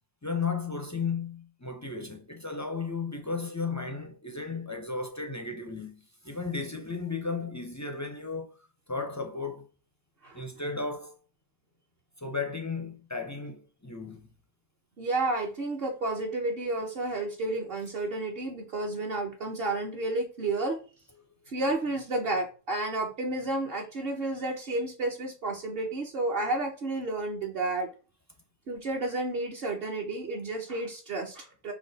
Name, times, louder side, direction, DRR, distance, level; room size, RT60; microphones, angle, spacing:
voice 1, 0.2-8.6 8.9-9.7 10.3-11.2 12.2-14.3, left 4 dB, 30° left, 0.3 m, -34 dB
voice 2, 15.0-20.8 21.5-27.9 28.7-31.7, right 2 dB, 55° right, 1.0 m, -31 dB
5.7 x 2.4 x 3.9 m
omnidirectional pair, 1.2 m